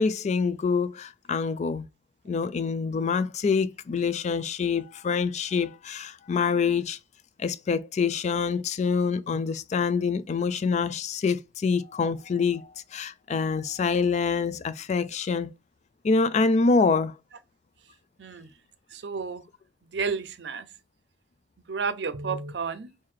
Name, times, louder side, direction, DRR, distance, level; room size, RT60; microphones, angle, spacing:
voice 1, 0.0-1.9 2.3-7.0 7.4-15.5 16.0-17.1, left 5 dB, 40° left, 0.3 m, -26 dB
voice 2, 18.9-19.4 19.9-20.7 21.7-22.9, right 5 dB, 75° right, 0.5 m, -31 dB
3.7 x 2.7 x 3.1 m
head